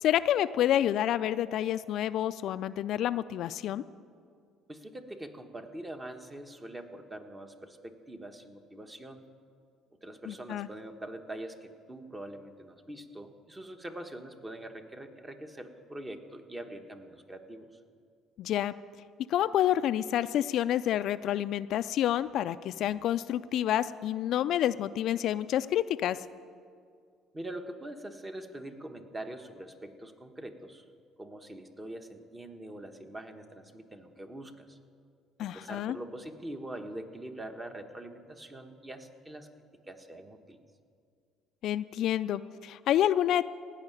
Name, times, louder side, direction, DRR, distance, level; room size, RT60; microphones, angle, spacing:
voice 1, 0.0-3.8 10.3-10.7 18.4-18.7 19.3-26.2 35.4-36.0 41.6-43.5, left 11 dB, 65° left, 13 dB, 0.3 m, -28 dB
voice 2, 4.7-9.2 10.0-17.7 27.3-30.8 31.2-34.8 35.4-39.5 39.9-40.6, right 1 dB, 20° right, 6 dB, 1.2 m, -43 dB
16.5 x 5.7 x 10.0 m, 2.2 s
supercardioid pair, 95°, 0 cm